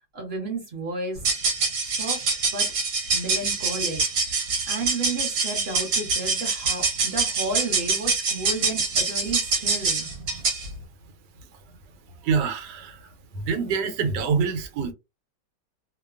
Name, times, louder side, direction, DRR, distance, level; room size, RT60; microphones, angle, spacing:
voice 1, 0.1-1.4 1.8-2.2 2.5-2.7 3.1-4.0 4.7-10.1, right 2 dB, 45° right, 1.0 m, -32 dB
sound 1, 1.2-10.7, right 4 dB, 60° right, 1.3 m, -25 dB
voice 2, 12.2-13.1 13.3-14.9, right 5 dB, 85° right, 1.3 m, -25 dB
2.9 x 2.2 x 2.3 m
omnidirectional pair, 1.9 m